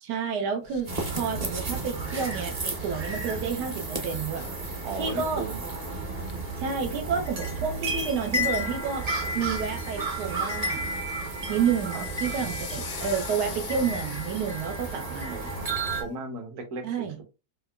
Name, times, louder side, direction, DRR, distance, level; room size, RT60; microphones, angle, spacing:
voice 1, 0.0-4.5 5.0-5.4 6.6-9.1 9.3-10.8 11.5-15.5 16.8-17.2, right 6 dB, 85° right, 1.3 m, -30 dB
sound 1, 0.6-16.1, left 9 dB, 70° left, 0.9 m, -46 dB
sound 2, 0.9-16.0, right 2 dB, 35° right, 0.6 m, -32 dB
voice 2, 4.8-5.6 11.9-12.0 15.0-15.7 16.0-17.2, right 3 dB, 60° right, 1.2 m, -36 dB
4.7 x 2.3 x 2.2 m
omnidirectional pair, 1.7 m